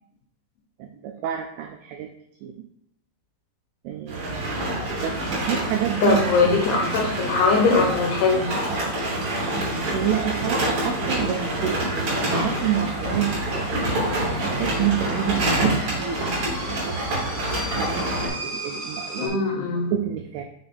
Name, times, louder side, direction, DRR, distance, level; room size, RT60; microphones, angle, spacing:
voice 1, 0.8-2.1 2.4-2.7 3.8-4.7 5.0-6.5 6.8-6.9 9.9-17.0 17.8-19.4 19.9-20.4, right 10 dB, 85° right, 3 dB, 2.2 m, -29 dB
sound 1, 4.1-18.3, right 1 dB, 45° right, 3.4 m, -26 dB
sound 2, 4.9-19.3, right 1 dB, 25° right, 1.1 m, -40 dB
voice 2, 6.0-8.5 19.2-19.9, left 4 dB, 80° left, 1 dB, 2.5 m, -21 dB
6.9 x 3.4 x 4.2 m, 0.73 s
omnidirectional pair, 5.0 m